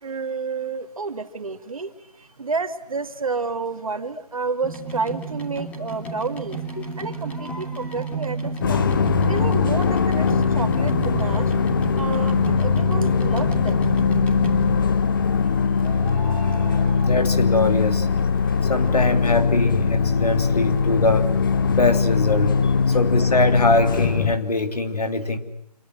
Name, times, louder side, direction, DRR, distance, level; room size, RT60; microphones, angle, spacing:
voice 1, 0.0-6.6 7.0-8.9 9.2-11.5 12.0-13.8 22.6-22.7, right 4 dB, 55° right, 9 dB, 2.2 m, -30 dB
sound 1, 4.6-15.0 15.8-17.9 18.2-19.1 19.6-19.7 19.9-20.0 20.2-20.3 20.8-20.9 21.1-21.2, right 4 dB, 5° left, 3.1 m, -32 dB
sound 2, 8.6-24.4, left 5 dB, 30° left, 1.1 m, -21 dB
voice 2, 17.0-18.1 18.7-21.3 21.7-22.6 22.9-25.4, left 2 dB, 65° left, 7 dB, 3.3 m, -22 dB
26.5 x 23.0 x 7.9 m, 0.70 s
figure-of-eight pair, 150°, 21 cm